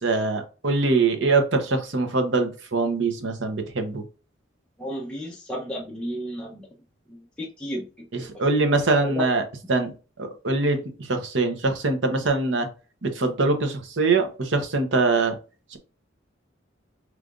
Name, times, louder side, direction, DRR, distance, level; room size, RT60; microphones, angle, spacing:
voice 1, 0.0-4.0 8.1-9.4 9.7-12.7 13.0-15.4 15.7-15.8, right 3 dB, 75° right, 6 dB, 0.9 m, -23 dB
voice 2, 4.8-6.7 7.1-8.3 9.0-9.2, equal, 5° left, -4 dB, 0.7 m, -33 dB
5.0 x 3.2 x 2.5 m, 0.34 s
head